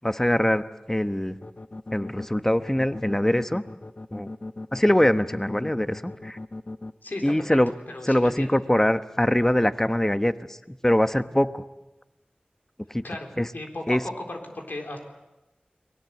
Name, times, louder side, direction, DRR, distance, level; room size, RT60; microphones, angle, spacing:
voice 1, 0.0-1.4 1.9-3.6 4.1-4.3 4.7-6.4 7.2-7.7 8.0-11.6 12.9-13.0 13.4-13.5 13.9-14.0, left 1 dB, 15° left, 11 dB, 1.0 m, -23 dB
sound 1, 1.4-6.9, left 2 dB, 50° left, 0.9 m, -37 dB
voice 2, 7.0-7.6 7.9-8.5 13.0-15.0, left 2 dB, 80° left, 2 dB, 3.8 m, -36 dB
30.0 x 20.5 x 8.2 m, 1.0 s
wide cardioid pair, 55°, 3 cm